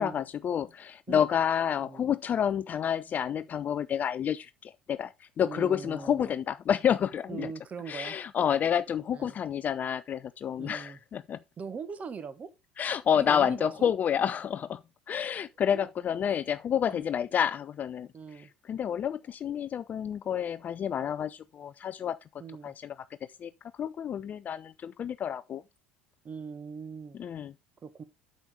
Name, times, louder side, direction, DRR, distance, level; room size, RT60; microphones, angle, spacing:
voice 1, 0.0-7.5 7.9-11.4 12.8-14.8 15.1-18.1 18.7-22.2 22.6-23.0 23.4-23.5 23.8-25.6 27.2-27.5, left 8 dB, 30° left, 0.4 m, -29 dB
voice 2, 1.8-2.1 5.4-6.4 7.3-8.2 9.1-9.4 10.6-11.0 11.6-12.5 13.2-13.9 15.7-15.9 16.9-17.2 18.1-18.5 22.4-22.7 26.2-27.2 27.8-28.0, right 5 dB, 30° right, 1.1 m, -41 dB
8.7 x 6.4 x 3.7 m
figure-of-eight pair, 65°, 5 cm